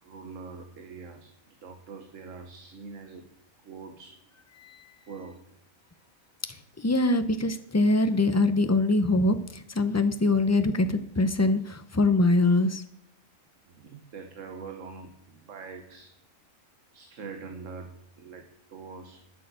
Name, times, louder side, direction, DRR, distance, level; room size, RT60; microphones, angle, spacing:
voice 1, 0.0-3.3 3.6-4.2 5.0-5.6 7.0-7.2 13.7-16.1 16.9-19.3, right 5 dB, 70° right, 6 dB, 1.5 m, -44 dB
voice 2, 6.8-12.8, left 2 dB, 20° left, 10 dB, 0.5 m, -23 dB
12.0 x 6.7 x 6.8 m, 0.73 s
omnidirectional pair, 1.4 m